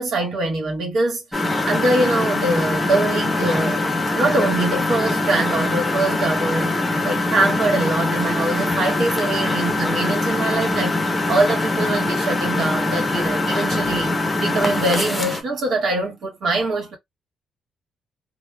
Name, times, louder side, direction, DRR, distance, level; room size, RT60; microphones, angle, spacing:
voice 1, 0.0-3.8 4.1-17.0, right 2 dB, 65° right, 1.3 m, -23 dB
Engine, 1.3-15.4, left 2 dB, 10° left, 0.7 m, -22 dB
2.9 x 2.2 x 2.3 m
cardioid pair, 90°, 0 cm